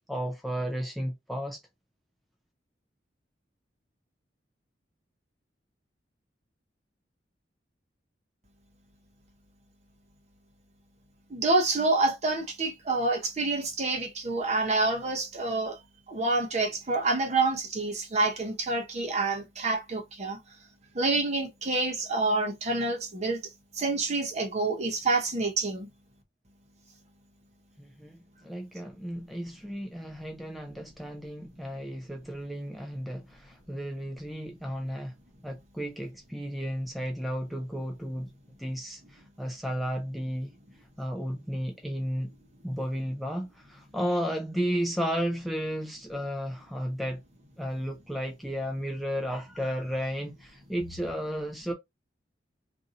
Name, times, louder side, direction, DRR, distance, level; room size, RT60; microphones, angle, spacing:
voice 1, 0.1-1.6 27.8-35.1 35.4-38.3 38.6-40.5 41.0-42.3 42.6-47.2 47.6-51.7, equal, ahead, 0.5 m, -33 dB
voice 2, 11.3-15.8 16.1-20.4 20.9-23.4 23.7-25.9, right 3 dB, 40° right, 0.9 m, -27 dB
2.7 x 2.7 x 3.8 m
head